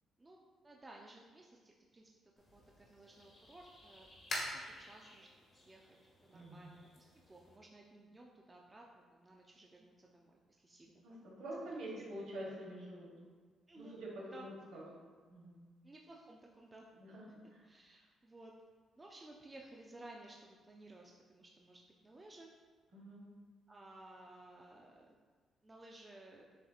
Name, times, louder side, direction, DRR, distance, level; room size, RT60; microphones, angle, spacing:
voice 1, 0.6-2.1 2.5-4.1 4.5-6.0 6.2-11.2 13.7-14.0 14.3-14.5 15.8-16.9 17.3-18.5 19.0-22.5 23.7-25.2 25.6-26.4, right 2 dB, 20° right, -1 dB, 0.4 m, -57 dB
sound 1, 2.4-7.6, left 1 dB, 50° left, 1.3 m, -48 dB
voice 2, 6.3-6.7 11.0-13.1 13.7-14.8 15.3-15.5 17.0-17.6 22.9-23.3, right 1 dB, 80° right, -4 dB, 1.5 m, -47 dB
7.4 x 2.8 x 2.4 m, 1.5 s
cardioid pair, 90°, 0 cm